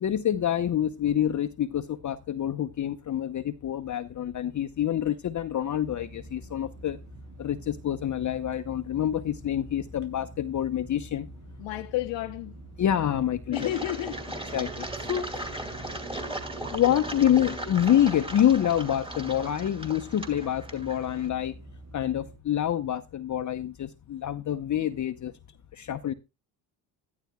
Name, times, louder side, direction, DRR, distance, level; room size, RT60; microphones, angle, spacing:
voice 1, 0.0-7.0 7.4-11.3 12.8-13.7 14.5-15.4 16.7-21.6 21.9-25.3 25.7-26.1, left 10 dB, 35° left, 0.8 m, -27 dB
sound 1, 5.8-22.4, right 2 dB, 30° right, 6.7 m, -47 dB
voice 2, 11.6-12.5 13.5-14.3, left 15 dB, 65° left, 0.9 m, -31 dB
Engine, 13.5-21.3, right 1 dB, 10° right, 2.4 m, -37 dB
11.5 x 11.5 x 2.2 m
supercardioid pair, 70°, 49 cm